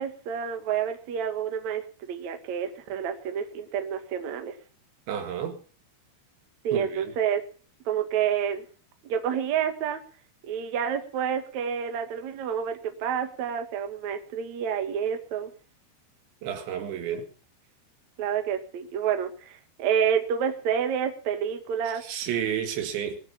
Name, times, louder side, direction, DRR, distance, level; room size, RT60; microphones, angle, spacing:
voice 1, 0.0-4.5 6.6-7.4 7.9-8.6 9.0-10.0 10.4-15.5 18.2-22.0, right 8 dB, 50° right, 2.5 m, -29 dB
voice 2, 5.1-5.6 6.7-7.1 16.4-17.3 22.0-23.2, right 9 dB, 85° right, 4.2 m, -31 dB
23.5 x 8.1 x 5.9 m
omnidirectional pair, 5.1 m